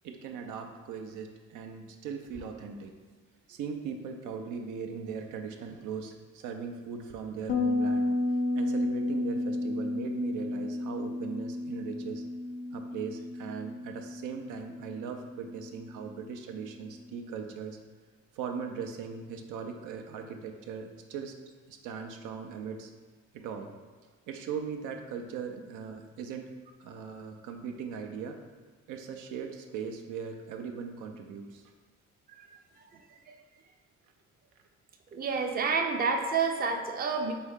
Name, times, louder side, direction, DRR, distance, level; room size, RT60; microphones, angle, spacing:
voice 1, 0.0-2.9 3.5-8.1 8.5-12.2 12.7-17.8 18.3-21.3 21.7-22.9 23.3-23.7 24.3-26.5 26.8-28.4 28.9-31.6, right 6 dB, 85° right, 4 dB, 0.5 m, -39 dB
Bass guitar, 7.5-16.8, left 2 dB, 30° left, 0.4 m, -33 dB
voice 2, 35.1-37.3, right 5 dB, 30° right, 4 dB, 0.5 m, -29 dB
4.4 x 2.7 x 3.5 m, 1.4 s
cardioid pair, 90°, 30 cm